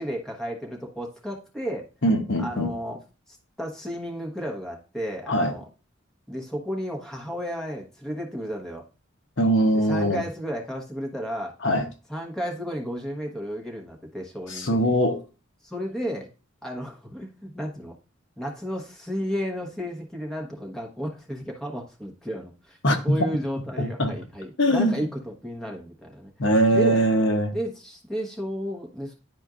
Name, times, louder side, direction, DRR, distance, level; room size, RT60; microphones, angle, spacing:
voice 1, 0.0-1.9 2.4-3.0 3.6-5.6 6.3-8.8 9.7-11.5 12.1-15.0 15.6-16.3 16.6-17.9 18.4-22.8 23.0-26.3 26.7-27.0 27.5-29.1, equal, 5° left, 1.1 m, -33 dB
voice 2, 2.0-2.7 5.3-5.5 9.4-10.2 11.6-11.8 14.5-15.2 22.8-23.0 23.8-24.1 24.6-25.0 26.4-27.5, equal, 60° left, 1.0 m, -21 dB
10.5 x 4.3 x 2.4 m
head